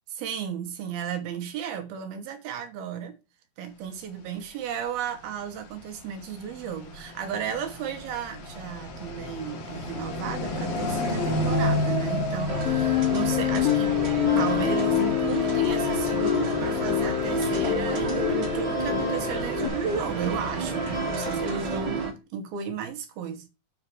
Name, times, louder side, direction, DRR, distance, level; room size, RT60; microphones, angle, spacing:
voice 1, 0.2-3.2 3.6-14.0 14.4-22.0 22.3-23.5, right 7 dB, 75° right, 2.9 m, -34 dB
sound 1, 4.7-21.3, left 1 dB, 60° left, 3.6 m, -33 dB
sound 2, 12.5-22.1, right 2 dB, 40° right, 1.9 m, -30 dB
sound 3, 12.7-19.7, left 15 dB, 90° left, 2.0 m, -26 dB
7.9 x 4.8 x 4.7 m
omnidirectional pair, 4.6 m